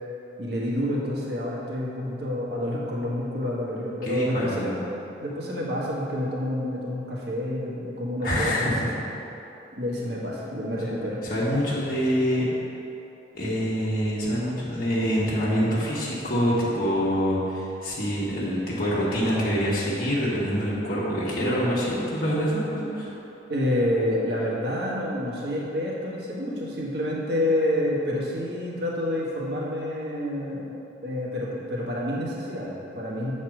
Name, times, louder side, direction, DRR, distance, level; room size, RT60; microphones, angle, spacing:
voice 1, 0.4-4.8 5.2-8.9 9.8-11.2 23.5-30.8 31.0-33.3, left 1 dB, 60° right, -5 dB, 1.6 m, -28 dB
voice 2, 4.0-4.7 8.2-8.9 11.2-12.5 13.3-23.1, equal, 50° left, -7 dB, 1.4 m, -25 dB
8.3 x 4.2 x 6.4 m, 3.0 s
head